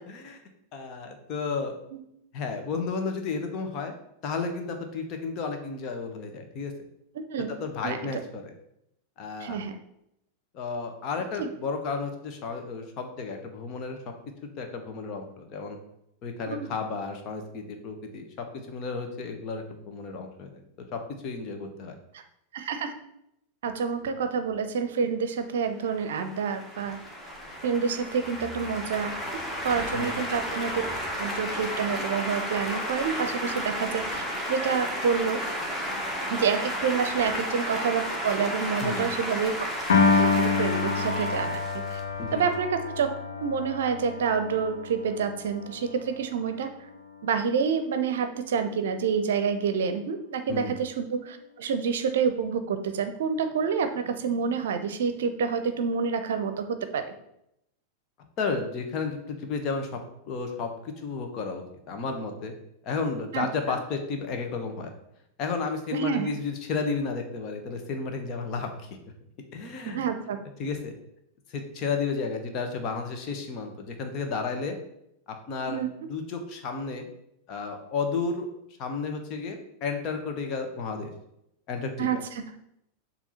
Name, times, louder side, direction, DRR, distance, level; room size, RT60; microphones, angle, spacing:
voice 1, 0.0-0.4 0.7-1.7 2.3-3.9 4.2-6.7 7.5-8.5 9.2-9.6 10.5-14.0 14.6-15.8 16.2-20.6 20.9-22.0 24.0-24.1 29.9-30.1 38.8-39.1 42.2-42.4 50.5-50.7 58.4-60.0 60.3-62.6 62.8-64.9 65.4-69.0 69.5-70.0 70.6-70.9 71.5-74.7 75.3-75.8 76.1-77.1 77.5-78.5 78.8-81.1 81.7-82.1, left 4 dB, 35° left, 4 dB, 1.1 m, -32 dB
voice 2, 7.2-7.5 7.8-8.2 9.4-9.7 11.4-11.5 16.6-16.7 22.1-22.2 22.5-22.9 23.6-27.0 27.6-30.7 31.2-34.2 34.5-35.4 36.3-39.5 40.0-41.6 41.9-42.0 42.3-43.1 43.4-46.7 47.2-57.1 63.3-63.8 65.9-66.3 69.9-70.4 75.7-75.9 82.0-82.4, right 6 dB, 60° right, 8 dB, 0.6 m, -28 dB
sound 1, 25.9-42.5, equal, 5° left, 1.4 m, -33 dB
Piano, 39.9-46.3, left 4 dB, 65° left, 0.9 m, -27 dB
7.1 x 2.9 x 5.7 m, 0.78 s
figure-of-eight pair, 90°, 0 cm